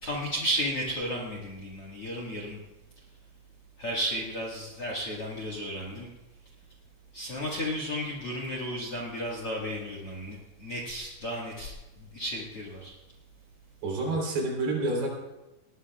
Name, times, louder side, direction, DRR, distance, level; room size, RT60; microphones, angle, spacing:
voice 1, 0.0-2.6 3.8-6.1 7.1-12.9, equal, 50° left, -2 dB, 1.8 m, -33 dB
voice 2, 13.8-15.1, right 2 dB, 65° right, -1 dB, 5.5 m, -28 dB
19.5 x 17.0 x 2.3 m, 1.0 s
omnidirectional pair, 4.9 m